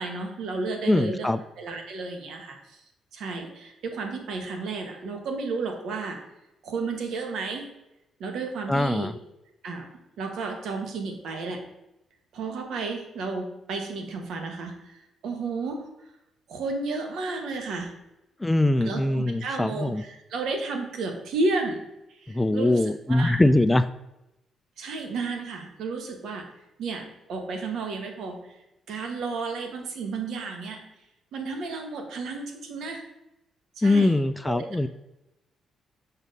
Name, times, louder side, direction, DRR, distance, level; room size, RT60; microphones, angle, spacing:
voice 1, 0.0-1.3 1.6-2.8 3.1-6.2 6.6-7.7 8.2-9.1 9.6-9.9 10.2-11.6 12.3-15.9 16.5-17.9 18.8-21.8 22.1-22.8 23.1-23.4 24.8-26.5 26.8-28.4 28.9-30.9 31.3-33.0 33.8-34.1 34.5-34.7, right 3 dB, 75° right, 4 dB, 1.3 m, -32 dB
voice 2, 0.9-1.4 8.7-9.1 18.4-20.0 22.3-23.9 33.8-34.9, left 2 dB, 10° left, 13 dB, 0.3 m, -22 dB
6.0 x 4.1 x 5.3 m, 0.92 s
cardioid pair, 90°, 0 cm